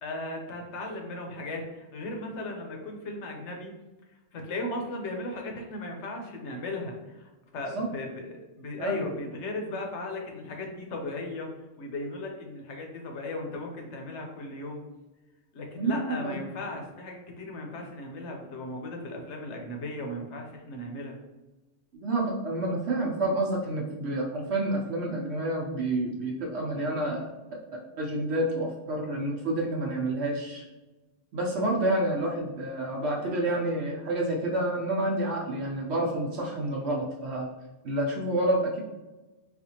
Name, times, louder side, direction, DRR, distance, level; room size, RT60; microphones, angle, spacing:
voice 1, 0.0-3.7 4.3-11.5 11.8-14.8 15.5-21.2, left 2 dB, 80° left, 2 dB, 1.0 m, -36 dB
voice 2, 15.7-16.4 21.9-27.3 28.0-30.6 31.3-37.5 37.8-38.8, right 1 dB, 70° right, -2 dB, 0.9 m, -29 dB
4.2 x 2.5 x 2.8 m, 1.1 s
omnidirectional pair, 1.2 m